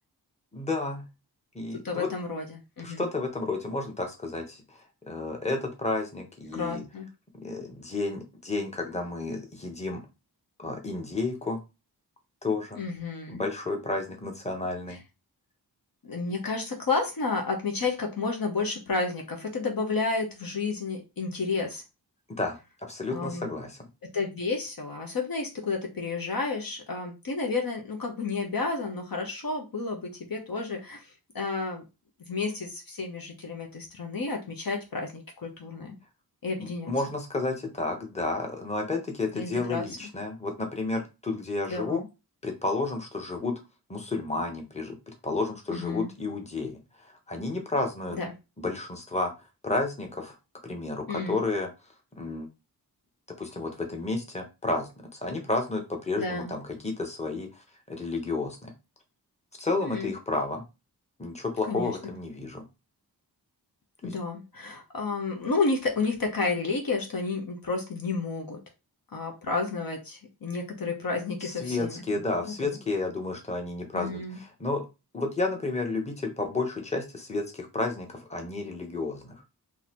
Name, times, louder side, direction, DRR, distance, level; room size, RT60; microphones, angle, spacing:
voice 1, 0.5-1.0 1.5-2.1 2.8-4.8 5.1-6.8 7.4-10.0 10.6-11.6 12.4-12.8 13.3-15.0 22.3-22.6 22.9-23.8 36.6-42.0 42.4-43.6 43.9-48.2 48.6-49.3 49.6-50.3 50.6-51.7 52.2-52.5 53.4-54.9 55.2-58.7 59.6-60.6 61.2-62.6 64.0-64.1 71.4-74.9 75.1-79.4, left 3 dB, 15° left, 2 dB, 1.1 m, -31 dB
voice 2, 1.8-3.1 6.5-7.1 12.7-13.5 16.0-21.8 23.1-23.5 24.0-31.8 32.3-35.9 36.4-36.9 39.3-39.9 41.7-42.0 45.7-46.1 48.1-48.3 51.1-51.4 56.1-56.5 59.8-60.1 61.7-62.0 64.0-68.6 69.1-72.0 72.4-72.7 73.9-74.4, left 3 dB, 60° left, 1 dB, 1.1 m, -31 dB
3.8 x 2.9 x 3.0 m, 0.27 s
cardioid pair, 55°, 40 cm